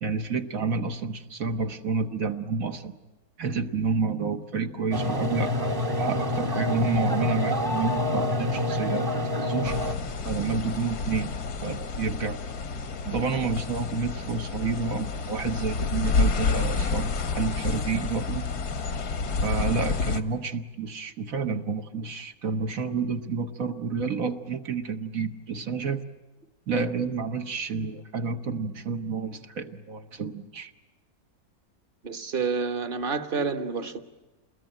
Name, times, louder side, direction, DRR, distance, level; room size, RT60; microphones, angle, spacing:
voice 1, 0.0-3.0 3.4-9.1 9.3-9.8 10.2-11.3 11.6-12.4 13.0-18.5 19.4-26.0 26.7-30.7, right 5 dB, 65° right, 6 dB, 1.7 m, -29 dB
sound 1, 4.9-9.9, left 1 dB, 15° right, 0.9 m, -27 dB
sound 2, 9.6-20.2, left 4 dB, 85° left, 1.9 m, -29 dB
voice 2, 32.0-34.0, right 5 dB, 35° right, 10 dB, 1.5 m, -29 dB
28.5 x 21.0 x 9.0 m, 1.2 s
omnidirectional pair, 1.6 m